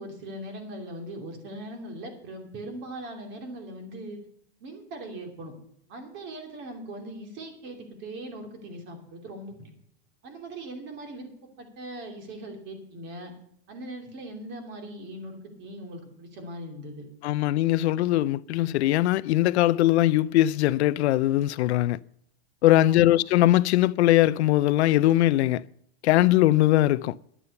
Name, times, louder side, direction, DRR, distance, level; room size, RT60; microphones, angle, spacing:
voice 1, 0.0-4.2 4.6-5.5 5.9-9.7 10.2-11.3 11.6-13.3 13.7-17.1 22.8-23.2, right 1 dB, 35° right, 2.9 m, -40 dB
voice 2, 17.2-22.0 22.6-25.6 26.0-27.2, left 15 dB, 85° left, 0.5 m, -21 dB
11.0 x 8.6 x 6.7 m
supercardioid pair, 160°, 32 cm